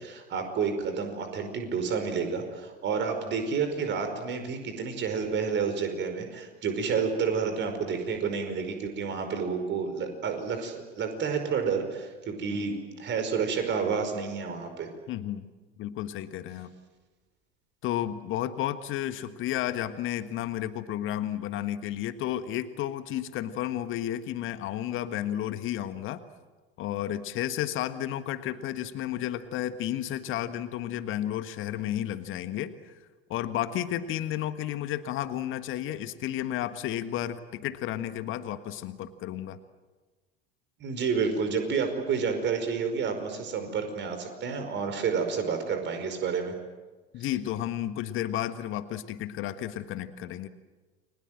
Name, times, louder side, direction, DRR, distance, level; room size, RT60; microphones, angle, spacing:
voice 1, 0.0-14.9 40.8-46.5, right 5 dB, 35° right, 7 dB, 5.2 m, -30 dB
voice 2, 15.1-15.5 15.8-16.7 17.8-26.2 26.8-32.7 33.3-39.6 47.1-50.5, left 12 dB, 40° left, 12 dB, 1.5 m, -32 dB
29.5 x 23.5 x 7.7 m, 1.3 s
figure-of-eight pair, 75°, 31 cm